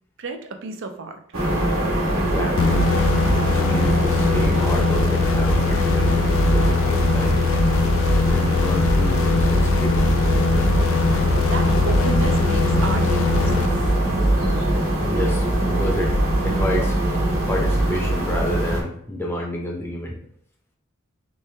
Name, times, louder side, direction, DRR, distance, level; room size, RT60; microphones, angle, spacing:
voice 1, 0.2-1.2 11.4-13.9, right 3 dB, 60° right, 6 dB, 0.5 m, -32 dB
sound 1, 1.3-18.8, right 1 dB, 80° right, 1.2 m, -22 dB
voice 2, 2.1-3.0 3.4-7.4 8.1-10.4 15.0-16.1 16.4-17.0 17.5-20.2, left 1 dB, 10° left, -1 dB, 0.7 m, -29 dB
sound 2, 2.6-14.3, left 5 dB, 65° left, 0.3 m, -22 dB
3.3 x 3.2 x 3.3 m, 0.65 s
head